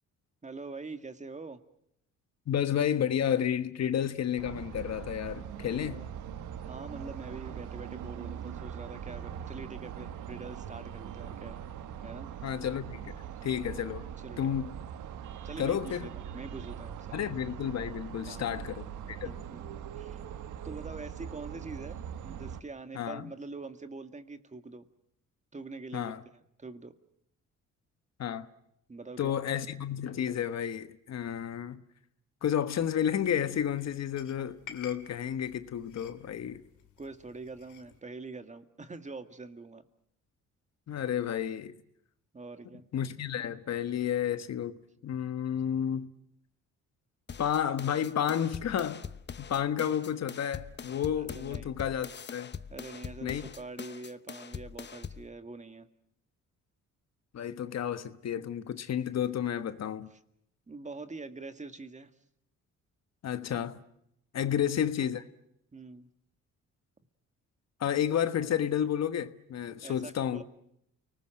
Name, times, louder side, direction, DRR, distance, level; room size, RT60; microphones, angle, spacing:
voice 1, 0.4-1.6 5.9-6.1 6.6-11.6 12.0-12.3 14.2-14.4 15.4-17.1 18.3-18.5 19.2-19.6 20.0-20.2 20.6-22.0 22.2-24.9 25.5-26.1 26.6-26.9 28.9-29.4 37.0-39.8 42.3-42.9 51.3-51.7 52.7-55.9 60.7-62.1 64.4-64.6 65.7-66.1 69.8-70.4, right 3 dB, 25° right, 1.9 m, -44 dB
voice 2, 2.5-6.0 12.4-13.1 13.4-14.1 14.4-14.7 15.6-16.1 17.1-19.4 22.9-23.3 25.9-26.2 28.2-28.5 29.2-31.8 32.4-36.6 40.9-41.8 42.9-44.8 45.0-46.1 47.4-49.0 49.4-52.5 53.2-53.5 57.3-60.1 63.2-63.8 64.3-65.2 67.8-70.4, left 9 dB, 60° left, 1.4 m, -31 dB
sound 1, 4.4-22.6, right 9 dB, 80° right, 1.4 m, -42 dB
sound 2, 32.8-38.0, left 8 dB, 80° left, 2.5 m, -53 dB
sound 3, 47.3-55.3, left 6 dB, 35° left, 1.0 m, -43 dB
29.5 x 19.5 x 7.7 m
cardioid pair, 90°, 30 cm